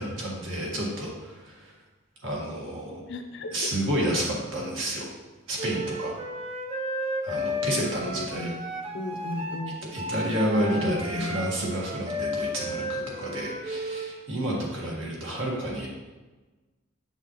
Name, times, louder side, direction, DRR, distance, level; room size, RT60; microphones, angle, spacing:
voice 1, 0.0-1.7 2.2-3.0 3.5-5.1 5.5-6.1 7.2-8.5 9.8-15.9, right 1 dB, 65° right, -3 dB, 1.7 m, -30 dB
voice 2, 3.1-3.7 8.0-8.6 8.9-9.7 10.6-11.4, left 2 dB, 60° left, 5 dB, 0.7 m, -34 dB
Wind instrument woodwind instrument, 5.6-14.1, equal, 30° right, 0.7 m, -33 dB
6.9 x 5.6 x 3.1 m, 1.2 s
head